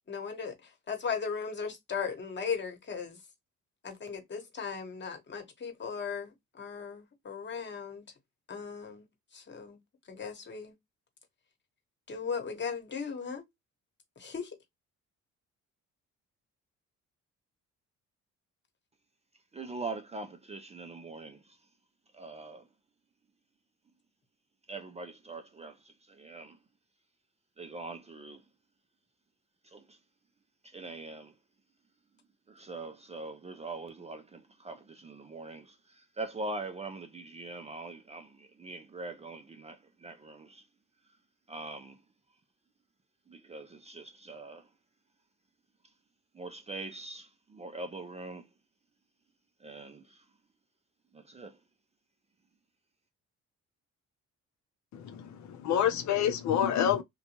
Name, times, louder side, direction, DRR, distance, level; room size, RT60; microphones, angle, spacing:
voice 1, 0.1-3.2 3.8-8.0 8.5-9.1 9.3-9.8 10.1-10.7 12.1-13.4 14.2-14.6, left 6 dB, 35° left, 1.1 m, -37 dB
voice 2, 19.5-21.6 22.1-22.7 24.7-26.6 27.6-28.4 29.6-30.0 30.6-31.4 32.5-40.6 41.5-42.0 43.3-44.7 46.3-48.5 49.6-50.3 51.1-51.6, right 2 dB, 20° right, 0.4 m, -43 dB
voice 3, 54.9-57.0, left 9 dB, 65° left, 0.6 m, -28 dB
2.7 x 2.2 x 2.8 m
cardioid pair, 90°, 30 cm